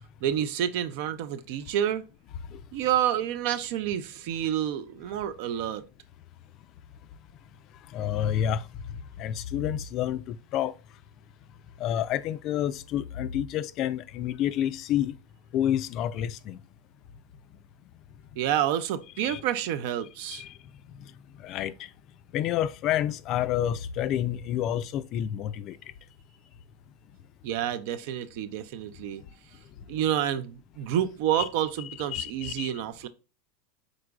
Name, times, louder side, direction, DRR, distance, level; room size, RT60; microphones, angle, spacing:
voice 1, 0.2-2.1 2.7-5.8 18.4-20.4 27.4-29.2 29.9-33.1, right 10 dB, 65° right, 0.4 m, -29 dB
voice 2, 7.9-8.6 9.2-10.7 11.8-15.1 15.5-16.6 19.2-19.4 20.3-20.5 21.4-21.7 22.3-25.8 31.3-31.5 32.1-32.7, left 10 dB, 45° left, 0.3 m, -29 dB
4.8 x 3.9 x 2.3 m
supercardioid pair, 120°, 0 cm